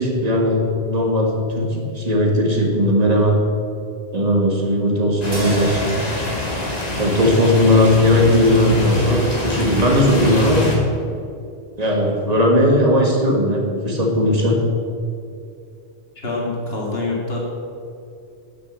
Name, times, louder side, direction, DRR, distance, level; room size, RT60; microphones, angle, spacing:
voice 1, 0.0-3.4 4.1-6.0 7.0-10.8 11.8-14.6, left 1 dB, 35° right, 0 dB, 1.8 m, -17 dB
sound 1, 5.2-10.8, left 1 dB, 40° left, 2.0 m, -25 dB
sound 2, 5.3-9.6, equal, 20° right, 1.4 m, -34 dB
voice 2, 16.2-17.4, left 2 dB, 65° left, -2 dB, 2.5 m, -25 dB
9.7 x 6.6 x 7.3 m, 2.5 s
omnidirectional pair, 1.1 m